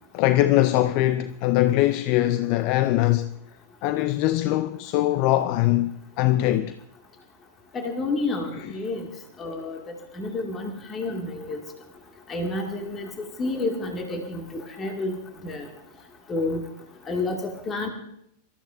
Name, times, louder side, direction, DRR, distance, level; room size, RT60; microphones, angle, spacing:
voice 1, 0.1-3.3 3.8-5.9 6.2-6.8, left 15 dB, 45° left, 0.5 m, -21 dB
voice 2, 7.7-9.1 9.4-9.8 10.1-11.6 12.3-13.1 13.4-15.1 15.4-15.7 16.3-16.6 17.1-17.9, left 2 dB, 25° left, 2.2 m, -29 dB
25.5 x 14.0 x 2.6 m
figure-of-eight pair, 90°, 0 cm